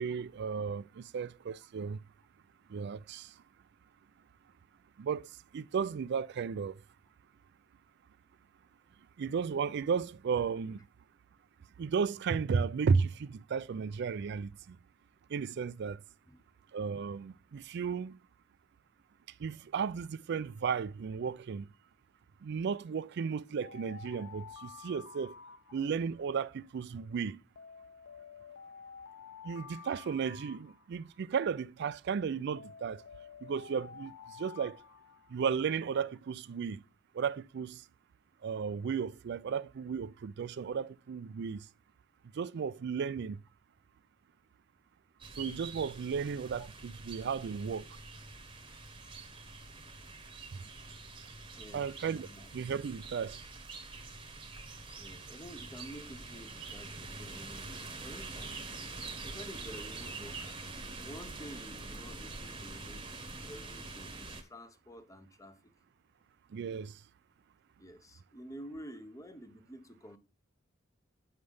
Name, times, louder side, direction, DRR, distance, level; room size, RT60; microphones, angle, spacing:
voice 1, 0.0-2.0 2.7-3.3 5.0-5.3 5.5-6.8 9.2-10.8 11.8-14.8 15.3-16.0 16.7-18.2 19.4-21.7 22.4-25.3 25.7-27.4 29.4-33.0 33.4-34.1 34.4-34.8 35.3-36.8 37.1-37.8 38.4-41.6 42.4-43.4 45.4-47.8 51.7-52.3 52.5-53.4 66.5-66.9, right 6 dB, 60° right, 0.4 m, -34 dB
Alarm, 23.6-26.2 27.6-31.2 32.6-35.8, left 6 dB, 70° left, 0.5 m, -51 dB
sound 1, 45.2-64.4, right 3 dB, 25° right, 1.0 m, -45 dB
voice 2, 51.5-52.5 54.9-58.7 59.2-65.7 67.8-70.2, equal, 15° left, 0.7 m, -50 dB
9.0 x 3.3 x 5.4 m
head